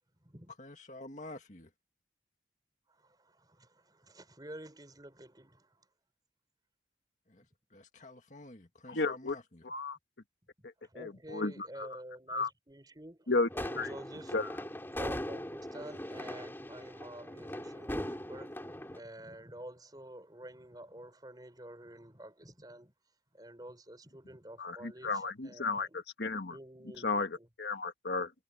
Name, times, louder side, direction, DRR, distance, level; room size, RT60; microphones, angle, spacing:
voice 1, 0.6-1.7 7.3-7.4 7.7-9.6, left 2 dB, 45° left, 2.0 m, -49 dB
voice 2, 2.9-5.8 10.6-14.3 14.9-22.9 23.3-26.0 26.5-27.5, right 1 dB, 20° right, 5.0 m, -50 dB
voice 3, 8.9-9.4 9.6-10.0 10.6-12.0 12.3-12.5 13.3-13.5 13.8-13.9 14.3-14.5 24.6-26.6 27.0-28.3, left 3 dB, 75° left, 1.5 m, -34 dB
sound 1, 13.5-19.0, left 1 dB, 15° left, 3.3 m, -40 dB
head